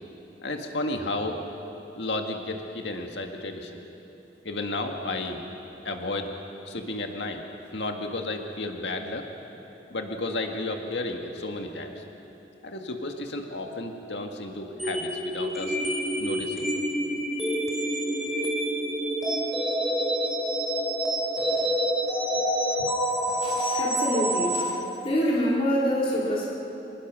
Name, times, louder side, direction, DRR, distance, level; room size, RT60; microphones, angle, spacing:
voice 1, 0.4-1.4 1.9-3.8 4.4-5.4 5.8-6.3 6.7-7.4 7.7-9.3 9.9-12.0 12.6-15.8 16.2-16.7, left 2 dB, 85° left, 3 dB, 1.8 m, -32 dB
sound 1, 14.8-24.7, equal, ahead, 3.3 m, -27 dB
voice 2, 23.4-24.8 25.0-26.5, equal, 30° left, -4 dB, 3.1 m, -26 dB
26.0 x 20.5 x 6.3 m, 3.0 s
head